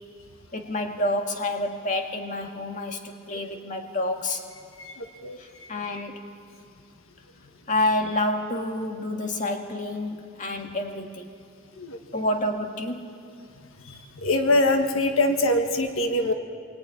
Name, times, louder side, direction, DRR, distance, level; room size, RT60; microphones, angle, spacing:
voice 1, 0.5-4.4 5.4-6.3 7.7-11.3 12.1-13.1, left 1 dB, 35° left, 3 dB, 2.1 m, -28 dB
voice 2, 4.8-5.4 11.8-12.2 13.9-16.3, left 1 dB, 85° left, 5 dB, 1.5 m, -24 dB
25.5 x 22.5 x 9.7 m, 2.3 s
head